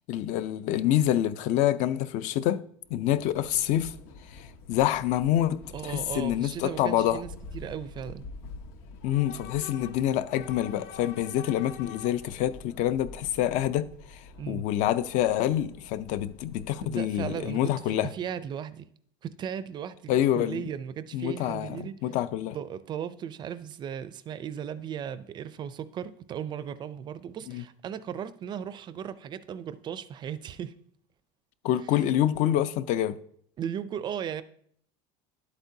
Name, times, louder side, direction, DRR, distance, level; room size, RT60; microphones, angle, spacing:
voice 1, 0.1-2.6 2.9-3.9 4.3-7.2 9.0-18.1 20.1-20.6 21.1-22.6 27.5-27.6 31.6-33.2, left 12 dB, 55° left, 0.5 m, -27 dB
Train / Subway metro underground, 2.8-17.7, left 4 dB, 70° left, 1.2 m, -46 dB
voice 2, 5.7-8.2 14.4-14.6 16.9-18.9 19.2-22.0 22.5-30.8 33.6-34.4, right 8 dB, 30° right, 0.4 m, -36 dB
11.0 x 8.3 x 2.7 m
cardioid pair, 150°, 15 cm